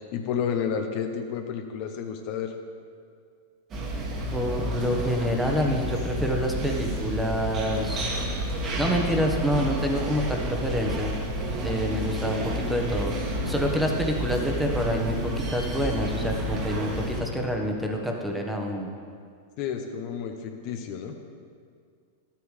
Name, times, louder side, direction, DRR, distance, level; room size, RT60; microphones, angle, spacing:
voice 1, 0.1-2.6 19.6-21.1, left 7 dB, 50° left, 5 dB, 0.7 m, -31 dB
sound 1, 3.7-17.2, right 1 dB, 35° right, 1.7 m, -30 dB
voice 2, 4.3-8.1 8.8-11.1 11.6-18.9, equal, 5° right, 1 dB, 1.1 m, -27 dB
12.0 x 8.4 x 3.3 m, 2.2 s
hypercardioid pair, 115°, 0 cm